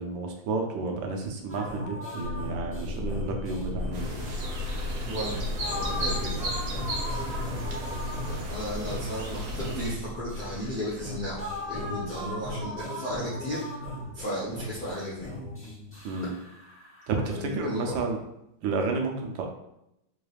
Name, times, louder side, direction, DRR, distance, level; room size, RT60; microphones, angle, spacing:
voice 1, 0.0-4.2 16.0-16.3 17.1-18.2 18.6-19.4, right 3 dB, 90° right, 2 dB, 1.4 m, -31 dB
sound 1, 1.5-17.2, equal, 10° left, 0.6 m, -38 dB
sound 2, 2.2-12.7, left 2 dB, 85° left, 1.4 m, -36 dB
sound 3, 3.9-9.9, right 1 dB, 60° right, 1.0 m, -36 dB
voice 2, 5.1-5.4 5.6-6.5 8.2-11.4 11.7-13.6 14.1-15.3 17.2-18.0, left 1 dB, 55° left, -7 dB, 0.5 m, -34 dB
4.6 x 3.3 x 2.3 m, 0.83 s
omnidirectional pair, 2.0 m